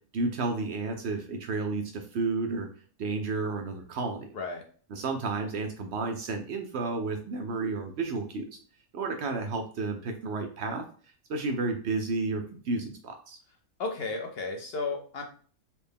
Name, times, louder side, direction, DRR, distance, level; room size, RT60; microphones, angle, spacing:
voice 1, 0.1-2.7 3.0-4.3 4.9-8.5 8.9-10.8 11.3-13.4, right 3 dB, 65° right, 5 dB, 0.7 m, -31 dB
voice 2, 13.8-15.2, left 3 dB, 60° left, 3 dB, 0.7 m, -33 dB
4.2 x 2.1 x 3.4 m, 0.43 s
omnidirectional pair, 1.4 m